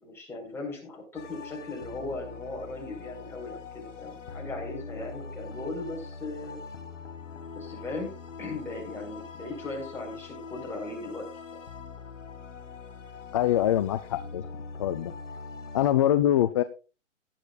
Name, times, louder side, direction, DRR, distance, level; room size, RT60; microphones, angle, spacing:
voice 1, 0.0-6.6 7.5-8.1 8.4-11.2 11.5-11.6, left 2 dB, 5° left, -4 dB, 5.2 m, -38 dB
sound 1, 1.1-15.9, left 5 dB, 75° left, 1.9 m, -43 dB
voice 2, 13.3-14.4 14.8-15.1 15.7-16.6, left 12 dB, 25° left, 11 dB, 0.4 m, -24 dB
17.5 x 10.0 x 2.4 m, 0.32 s
hypercardioid pair, 135°, 37 cm